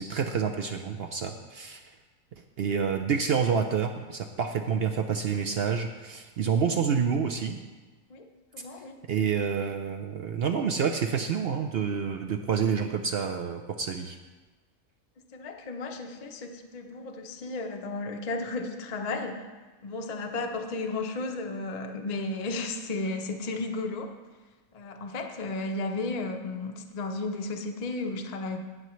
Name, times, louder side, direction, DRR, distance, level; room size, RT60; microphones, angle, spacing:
voice 1, 0.0-1.8 2.6-7.6 9.1-14.2, right 6 dB, 65° right, 5 dB, 0.6 m, -28 dB
voice 2, 8.5-9.0 15.3-19.4 19.8-24.1 24.7-28.6, left 3 dB, 35° left, 3 dB, 0.7 m, -34 dB
17.5 x 6.8 x 3.1 m, 1.3 s
omnidirectional pair, 1.5 m